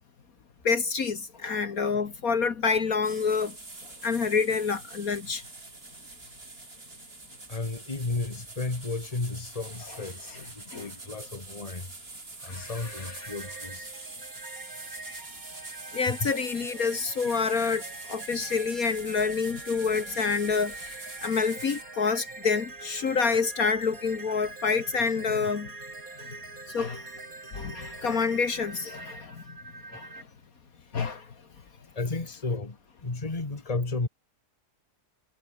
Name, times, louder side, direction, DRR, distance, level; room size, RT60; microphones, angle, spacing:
voice 1, 0.6-3.6 4.0-5.4 10.3-10.5 10.7-10.9 12.5-13.3 15.9-17.8 18.1-25.7 26.7-27.0 27.5-29.4 29.9-30.2 30.9-31.3, left 5 dB, 55° left, 2.0 m, -28 dB
sound 1, 3.0-21.8, right 3 dB, 35° right, 3.3 m, -44 dB
voice 2, 7.5-11.9 12.4-13.9 16.1-16.3 32.0-32.8 33.0-34.1, left 3 dB, 20° left, 2.0 m, -33 dB
sound 2, 12.6-30.2, right 3 dB, 55° right, 4.4 m, -44 dB
omnidirectional pair, 1.8 m